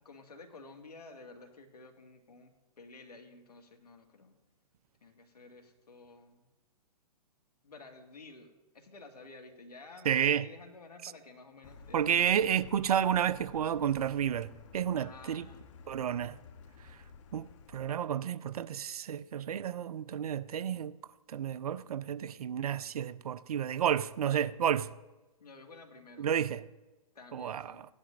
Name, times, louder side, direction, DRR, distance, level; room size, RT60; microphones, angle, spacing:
voice 1, 0.0-4.4 5.0-6.4 7.6-12.8 15.0-15.7 25.4-26.3 27.1-27.9, left 3 dB, 85° left, 1.9 m, -52 dB
voice 2, 10.1-10.5 11.0-11.1 11.9-15.5 15.9-16.4 17.3-17.5 17.7-21.0 21.3-24.9 26.2-26.6 27.3-27.6, right 9 dB, 70° right, 0.5 m, -31 dB
Car, 11.6-17.9, left 5 dB, 50° left, 1.0 m, -53 dB
17.0 x 10.5 x 2.5 m
hypercardioid pair, 130°, 20 cm